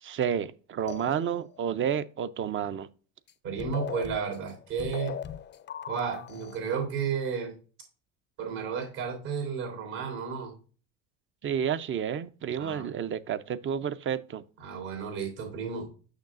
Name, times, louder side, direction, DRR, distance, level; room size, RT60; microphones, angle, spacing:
voice 1, 0.0-2.9 11.4-14.4, right 8 dB, 35° right, 0.5 m, -30 dB
sound 1, 0.9-1.7 3.3-3.4 3.6-6.6, left 9 dB, 30° left, 0.4 m, -39 dB
voice 2, 3.4-5.1 5.9-7.5 8.4-10.5 12.6-12.9 14.6-15.9, right 6 dB, 75° right, 3.3 m, -32 dB
6.6 x 5.9 x 2.4 m
supercardioid pair, 85°, 39 cm